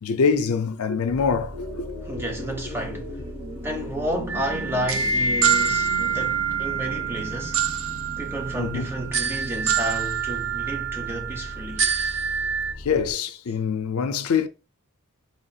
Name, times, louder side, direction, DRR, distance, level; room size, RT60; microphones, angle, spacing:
voice 1, 0.0-1.9 8.6-8.9 12.8-14.5, left 6 dB, 75° left, 0.4 m, -24 dB
Bus, 1.1-13.1, left 1 dB, 85° right, 1.4 m, -40 dB
sound 1, 1.5-10.1, equal, 45° right, 1.4 m, -39 dB
voice 2, 2.0-3.2 3.6-7.7 8.2-11.9, right 1 dB, 10° right, 0.6 m, -31 dB
sound 2, 4.3-12.7, right 6 dB, 65° right, 0.5 m, -26 dB
4.4 x 2.4 x 2.7 m
head